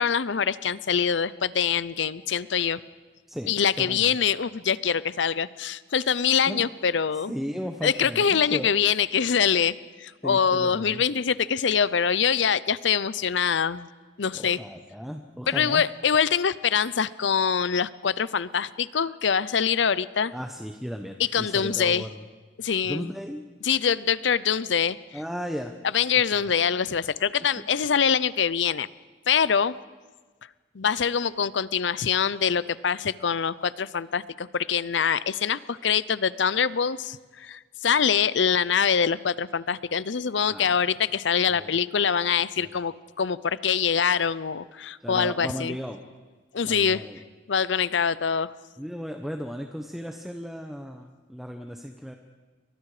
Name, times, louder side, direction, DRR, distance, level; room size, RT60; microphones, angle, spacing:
voice 1, 0.0-2.8 3.5-7.3 7.8-13.9 14.2-14.6 15.5-20.3 21.2-22.0 22.6-23.1 23.6-25.0 25.9-28.9 29.3-29.7 30.7-45.7 46.5-47.0 47.5-48.5, left 7 dB, 75° left, 18 dB, 0.6 m, -24 dB
voice 2, 3.3-4.2 6.5-6.7 7.1-8.7 10.2-11.0 14.3-15.8 20.3-22.2 22.8-23.4 25.1-25.8 27.6-27.7 40.5-40.8 41.4-41.8 42.6-42.8 45.0-46.0 46.6-47.2 48.8-52.1, equal, ahead, 4 dB, 1.0 m, -35 dB
29.5 x 23.5 x 5.0 m, 1.4 s
head